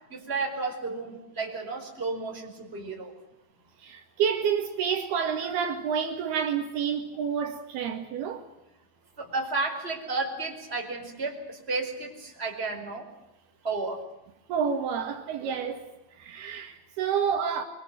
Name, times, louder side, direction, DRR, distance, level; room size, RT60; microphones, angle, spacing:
voice 1, 0.1-3.1 9.2-13.1 13.6-14.0, right 3 dB, 15° right, 4.7 m, -32 dB
voice 2, 3.8-8.4 14.5-15.9 16.2-17.6, right 7 dB, 70° right, 3.8 m, -29 dB
25.5 x 24.5 x 7.7 m
omnidirectional pair, 4.9 m